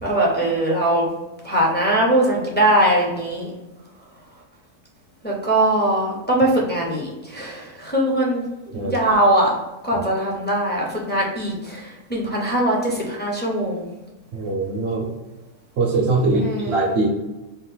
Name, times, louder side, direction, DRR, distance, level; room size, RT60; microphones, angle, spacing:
voice 1, 0.0-1.1 1.4-3.5 5.2-8.4 8.7-9.5 9.8-13.8 16.4-16.8, right 1 dB, 10° left, -4 dB, 0.6 m, -21 dB
voice 2, 14.3-15.1 15.8-17.1, right 3 dB, 50° right, -2 dB, 0.9 m, -22 dB
3.9 x 2.5 x 3.9 m, 1.0 s
omnidirectional pair, 1.6 m